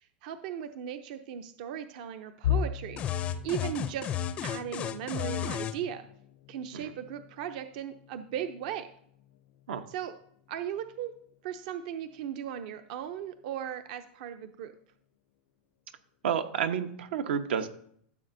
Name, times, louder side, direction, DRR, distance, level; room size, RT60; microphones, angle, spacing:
voice 1, 0.0-4.1 4.4-6.1 6.5-8.9 9.9-10.1 10.5-11.1 11.4-14.7, right 9 dB, 50° right, 9 dB, 0.5 m, -37 dB
sound 1, 2.4-14.3 14.7-15.0 15.3-15.5 16.4-16.8, left 9 dB, 70° left, 0.5 m, -40 dB
sound 2, 3.0-5.8, left 9 dB, 20° left, 0.4 m, -33 dB
voice 2, 16.2-17.7, right 8 dB, 85° right, 9 dB, 0.9 m, -30 dB
14.0 x 7.2 x 2.6 m, 0.65 s
supercardioid pair, 165°, 6 cm